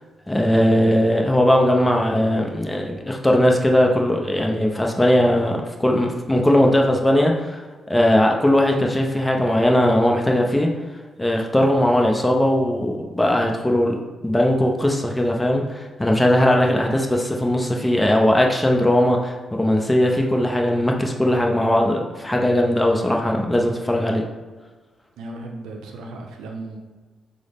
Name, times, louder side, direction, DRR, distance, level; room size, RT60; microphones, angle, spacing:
voice 1, 0.3-7.6 7.9-10.7 11.2-14.0 14.2-24.2, left 1 dB, 10° left, 1 dB, 0.5 m, -19 dB
voice 2, 25.2-26.8, right 2 dB, 90° right, 2 dB, 0.6 m, -36 dB
6.1 x 2.1 x 3.4 m, 1.3 s
cardioid pair, 75°, 0 cm